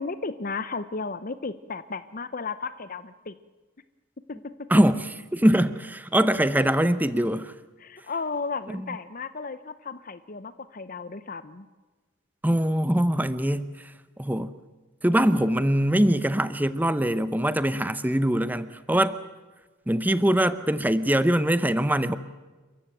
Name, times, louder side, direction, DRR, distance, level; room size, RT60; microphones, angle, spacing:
voice 1, 0.0-3.3 4.3-4.7 7.8-11.7, left 4 dB, 40° left, 13 dB, 0.7 m, -34 dB
voice 2, 4.7-7.5 8.7-9.0 12.4-13.9 14.2-14.5 15.0-19.2 19.9-22.2, right 1 dB, 10° right, 13 dB, 0.7 m, -23 dB
29.5 x 14.5 x 9.1 m, 1.2 s
head